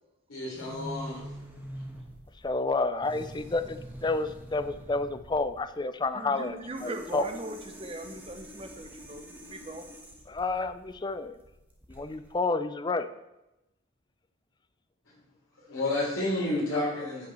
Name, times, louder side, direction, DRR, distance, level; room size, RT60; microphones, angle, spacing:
voice 1, 0.3-1.2 15.6-17.3, left 2 dB, 80° left, -8 dB, 4.1 m, -30 dB
sound 1, 0.5-12.4, equal, 10° right, 1.2 m, -45 dB
voice 2, 2.4-7.2 10.3-11.4 11.9-13.1, left 3 dB, 20° left, 11 dB, 0.4 m, -30 dB
voice 3, 6.1-9.9, right 1 dB, 25° right, 5 dB, 0.9 m, -40 dB
8.5 x 5.2 x 7.4 m, 0.93 s
head